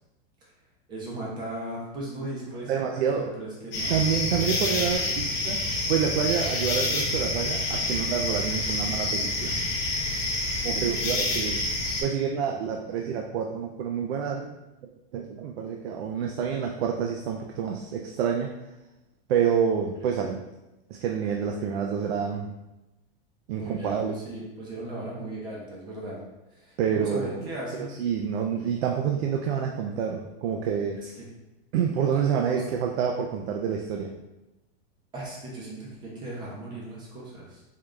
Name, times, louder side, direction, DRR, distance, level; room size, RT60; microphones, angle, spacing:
voice 1, 0.9-3.9 10.9-11.3 20.0-20.1 23.5-26.2 26.5-28.0 31.0-31.1 32.4-32.6 35.1-37.6, right 1 dB, 15° right, -3 dB, 0.5 m, -37 dB
voice 2, 2.7-3.3 3.9-5.6 5.9-9.6 10.6-11.6 12.0-14.5 15.1-18.5 19.3-20.4 20.9-22.5 23.5-24.2 26.8-27.5 27.8-31.0 31.7-34.1, right 7 dB, 80° right, 2 dB, 0.5 m, -28 dB
sound 1, 3.7-12.0, left 2 dB, 40° left, 0.8 m, -28 dB
3.7 x 2.3 x 3.1 m, 1.0 s
supercardioid pair, 170°, 31 cm